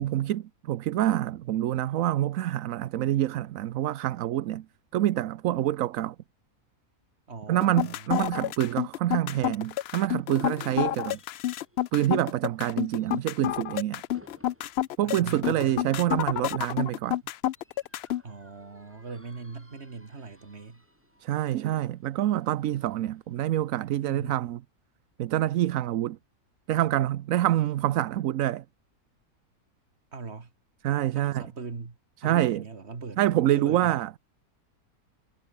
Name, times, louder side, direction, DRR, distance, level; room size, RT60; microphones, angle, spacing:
voice 1, 0.0-4.7 4.9-6.1 7.5-11.2 11.9-14.0 15.0-17.2 21.2-24.6 25.2-26.2 26.7-28.6 30.8-31.4 32.2-32.6 33.2-34.1, right 13 dB, 70° right, 1.0 m, -26 dB
voice 2, 7.3-8.3 15.0-15.9 18.2-20.8 24.0-24.4 30.1-30.5 31.2-32.0 32.2-34.0, right 4 dB, 45° right, 2.4 m, -40 dB
sound 1, 7.6-18.2, left 13 dB, 85° left, 0.5 m, -29 dB
sound 2, 7.8-24.1, equal, 10° right, 6.7 m, -62 dB
omnidirectional pair, 1.6 m